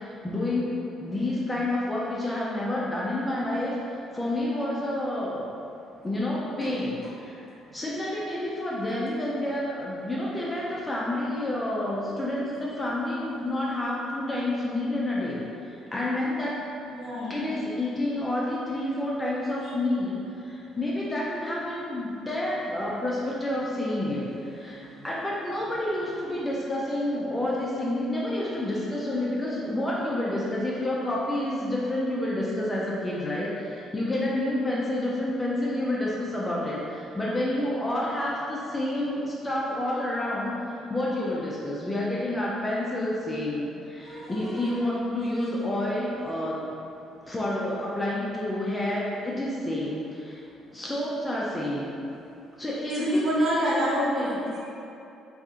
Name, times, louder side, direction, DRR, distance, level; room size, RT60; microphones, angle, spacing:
voice 1, 0.0-3.8 4.1-5.5 6.0-7.0 7.3-16.6 17.3-46.7 47.3-50.4 50.7-51.9 52.6-54.3, left 1 dB, 15° left, -6 dB, 0.3 m, -29 dB
voice 2, 16.9-17.4 19.6-19.7 20.5-20.8 24.5-25.1 44.0-44.8 45.3-45.5 47.3-47.4 50.7-50.8 52.9-54.6, equal, 40° right, -7 dB, 0.7 m, -30 dB
2.7 x 2.4 x 3.5 m, 2.7 s
cardioid pair, 160°, 0 cm